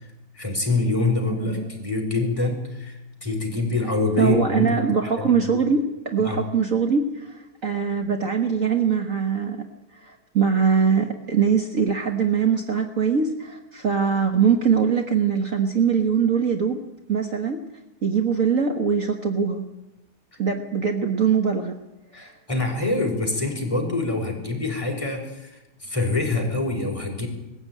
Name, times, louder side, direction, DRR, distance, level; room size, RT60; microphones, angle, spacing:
voice 1, 0.0-4.7 5.1-5.6 6.2-6.4 22.1-27.3, left 3 dB, 15° left, 0 dB, 5.1 m, -26 dB
voice 2, 1.3-1.7 4.2-9.7 9.9-16.8 17.1-17.6 18.0-19.6 20.4-21.8 22.1-22.3, right 6 dB, 50° right, 5 dB, 1.6 m, -22 dB
20.5 x 15.5 x 9.3 m, 0.95 s
omnidirectional pair, 2.0 m